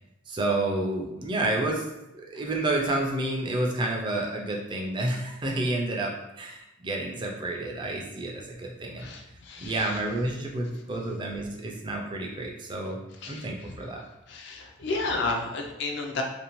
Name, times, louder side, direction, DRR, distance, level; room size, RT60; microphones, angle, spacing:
voice 1, 0.3-1.9 2.1-9.1 9.6-13.0 13.3-14.0, right 2 dB, 25° right, 0 dB, 0.3 m, -30 dB
voice 2, 9.0-10.0 13.2-13.8 14.3-16.2, left 3 dB, 55° left, 2 dB, 0.4 m, -32 dB
2.5 x 2.1 x 2.9 m, 0.95 s
head